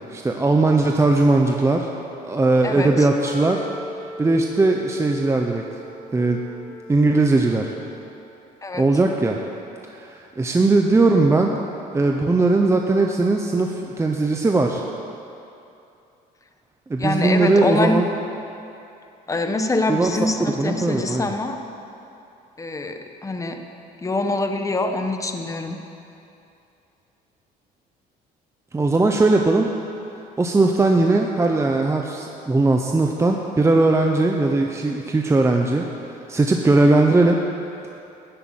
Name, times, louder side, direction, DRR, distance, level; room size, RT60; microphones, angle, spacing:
voice 1, 0.1-1.9 2.2-3.6 4.2-5.6 6.1-6.4 6.9-7.7 8.8-9.4 9.9-11.6 11.9-14.8 16.9-18.1 19.9-20.1 20.6-21.3 28.7-29.7 30.4-37.4, right 2 dB, 15° right, 2 dB, 0.9 m, -19 dB
voice 2, 2.6-3.1 8.6-8.8 17.0-18.0 19.3-21.6 22.6-23.6 24.0-25.8, left 2 dB, 20° left, 6 dB, 1.2 m, -24 dB
Wind instrument woodwind instrument, 3.2-8.3, left 1 dB, 80° left, 2.6 m, -39 dB
14.0 x 8.2 x 8.9 m, 2.7 s
cardioid pair, 110°, 17 cm